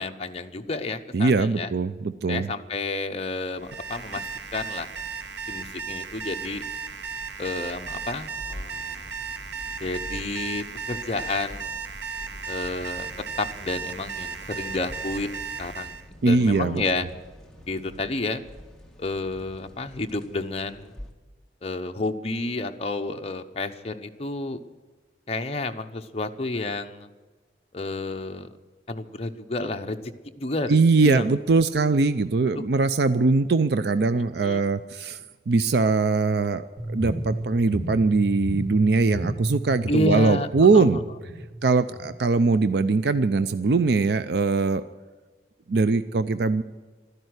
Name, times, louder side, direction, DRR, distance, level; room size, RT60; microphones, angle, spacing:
voice 1, 0.0-1.7 2.3-4.3 4.5-4.9 5.5-6.6 7.4-9.2 9.8-11.7 12.5-13.1 13.4-16.0 16.2-17.1 17.7-18.4 19.0-20.9 21.6-24.6 25.3-27.1 27.7-28.5 28.9-30.0 30.4-30.8 31.0-31.2 32.6-32.7 34.4-34.6 39.9-41.0, left 2 dB, 35° left, 5 dB, 0.9 m, -30 dB
voice 2, 1.1-2.5 16.2-16.8 30.7-35.2 35.5-36.6 36.9-41.0 41.6-44.8 45.7-46.6, right 3 dB, 60° right, 12 dB, 0.5 m, -21 dB
Alarm, 3.6-16.1, right 5 dB, 80° right, 1.0 m, -35 dB
sound 1, 7.8-21.1, equal, 5° left, 1.5 m, -46 dB
sound 2, 36.8-42.8, right 1 dB, 15° right, 3.1 m, -33 dB
12.5 x 11.0 x 9.5 m, 1.3 s
head